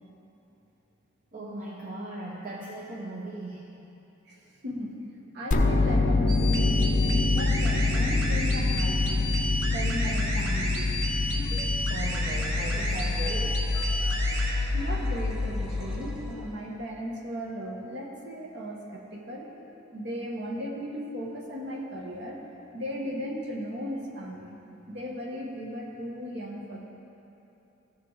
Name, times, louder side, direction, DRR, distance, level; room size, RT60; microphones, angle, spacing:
voice 1, 1.3-3.7 11.9-13.7, right 1 dB, 45° right, -5 dB, 0.8 m, -38 dB
voice 2, 4.3-5.1 5.3-9.3 9.7-10.9 14.7-19.5 19.9-22.4 22.7-24.6 24.9-26.8, equal, 60° right, -1 dB, 1.2 m, -36 dB
sound 1, 5.5-16.5, left 3 dB, 40° left, 0.5 m, -26 dB
sound 2, 6.3-14.5, equal, 80° right, 1.3 m, -33 dB
sound 3, 11.3-11.6 11.9-16.9, equal, 5° right, 0.7 m, -45 dB
14.5 x 4.9 x 4.0 m, 3.0 s
head